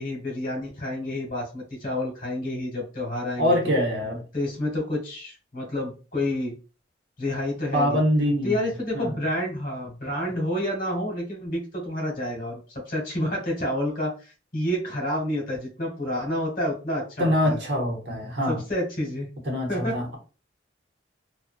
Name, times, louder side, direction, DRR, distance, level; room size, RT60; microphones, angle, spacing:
voice 1, 0.0-3.7 4.3-6.5 7.2-8.0 8.4-17.6 18.5-19.3 19.7-19.9, left 1 dB, 50° left, -2 dB, 1.2 m, -29 dB
voice 2, 3.4-4.2 7.7-8.7 8.9-9.2 17.2-18.6 19.5-20.2, equal, 65° right, 1 dB, 0.9 m, -24 dB
2.5 x 2.2 x 2.4 m, 0.34 s
head